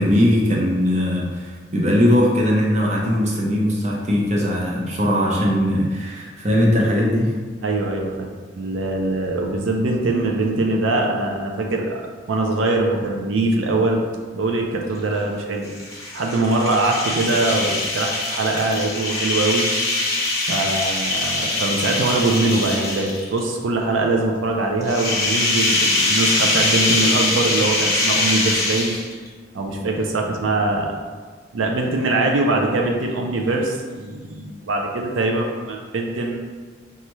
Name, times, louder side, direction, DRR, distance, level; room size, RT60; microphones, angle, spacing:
voice 1, 0.0-7.3, equal, 35° right, -3 dB, 0.7 m, -19 dB
voice 2, 7.6-8.3 8.5-12.0 12.3-14.0 14.3-15.7 16.1-19.7 20.5-28.9 29.5-30.9 31.5-36.4, right 2 dB, 85° right, 1 dB, 0.5 m, -22 dB
sound 1, 15.6-23.4 24.8-29.3, left 2 dB, 15° left, 0.7 m, -22 dB
5.3 x 2.4 x 3.0 m, 1.5 s
head